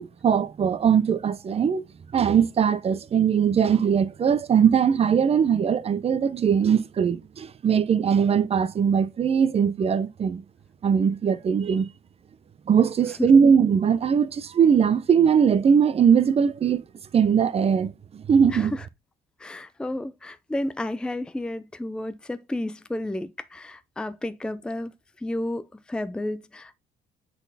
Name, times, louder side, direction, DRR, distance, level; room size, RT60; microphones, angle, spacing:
voice 1, 0.0-1.8 2.1-10.4 10.8-11.9 12.7-16.8 17.1-18.7, right 7 dB, 35° right, 0.7 m, -20 dB
voice 2, 18.5-18.9 19.4-24.9 25.2-26.8, left 1 dB, 5° left, 0.5 m, -32 dB
7.8 x 4.2 x 4.1 m
cardioid pair, 110°, 17 cm